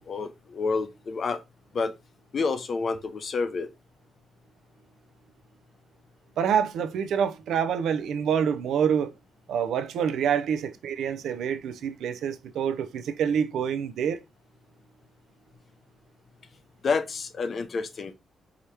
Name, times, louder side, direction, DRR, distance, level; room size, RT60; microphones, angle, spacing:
voice 1, 0.0-1.4 1.7-1.9 2.3-3.7 16.8-18.1, left 4 dB, 35° left, 0.5 m, -29 dB
voice 2, 6.4-9.1 9.5-14.2, right 7 dB, 85° right, 0.5 m, -27 dB
4.9 x 2.9 x 3.3 m
wide cardioid pair, 175°, 0 cm